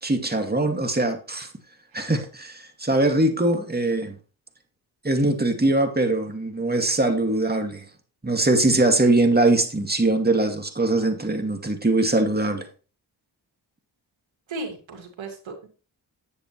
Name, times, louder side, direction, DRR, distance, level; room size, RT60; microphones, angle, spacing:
voice 1, 0.0-1.5 1.9-4.2 5.0-7.8 8.2-12.7, right 2 dB, 20° right, 2.2 m, -22 dB
voice 2, 14.5-15.7, right 2 dB, 85° right, 2.3 m, -35 dB
9.6 x 8.4 x 3.2 m
cardioid pair, 40°, 45 cm